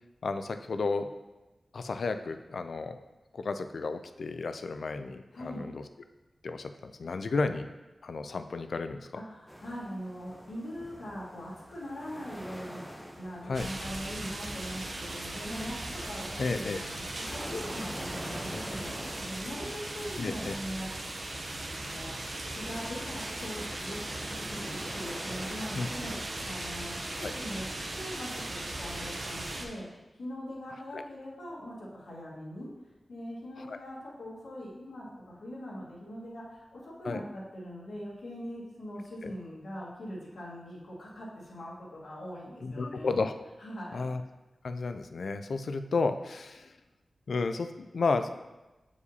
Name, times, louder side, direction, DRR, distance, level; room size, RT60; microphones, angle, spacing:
voice 1, 0.2-1.1 1.7-3.0 3.3-5.8 6.4-7.7 8.0-9.1 13.5-13.7 16.4-16.8 20.2-20.5 25.7-25.9 27.2-27.3 30.9-31.0 33.6-33.8 37.0-37.2 39.2-39.3 42.6-43.3 43.9-44.2 44.6-46.7 47.3-48.5, left 4 dB, 70° left, 9 dB, 0.3 m, -32 dB
voice 2, 5.3-5.6 9.1-12.8 13.2-21.1 21.5-24.0 24.2-29.9 30.2-32.7 33.1-43.2 43.6-44.1, equal, 90° left, -6 dB, 1.6 m, -41 dB
sound 1, 9.5-26.9, equal, ahead, 0.7 m, -46 dB
sound 2, 13.5-29.7, right 2 dB, 50° right, 0.7 m, -38 dB
8.1 x 4.8 x 2.8 m, 1.1 s
wide cardioid pair, 120°, 0 cm